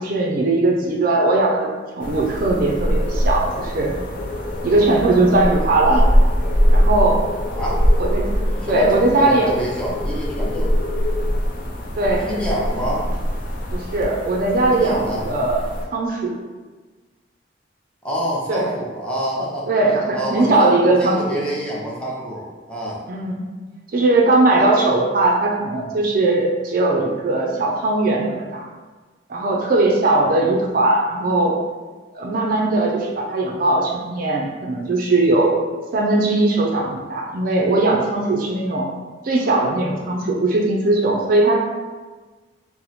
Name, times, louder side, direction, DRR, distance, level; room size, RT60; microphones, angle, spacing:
voice 1, 0.0-1.7 2.0-3.9 4.6-6.0 6.7-7.2 8.0-8.3 8.7-9.5 12.0-12.3 13.7-15.0 15.2-15.6 15.9-16.4 18.5-18.7 19.7-21.4 23.1-23.4 23.9-28.7 29.3-31.5 32.1-35.5 35.9-38.9 39.2-41.6, right 2 dB, 50° right, -1 dB, 0.4 m, -19 dB
sound 1, 2.0-15.8, equal, 50° left, 0.4 m, -22 dB
voice 2, 7.5-7.8 8.6-10.7 12.2-13.1 14.6-15.2 18.0-19.6 20.1-23.0, equal, 5° left, -6 dB, 0.6 m, -27 dB
2.9 x 2.0 x 4.0 m, 1.3 s
head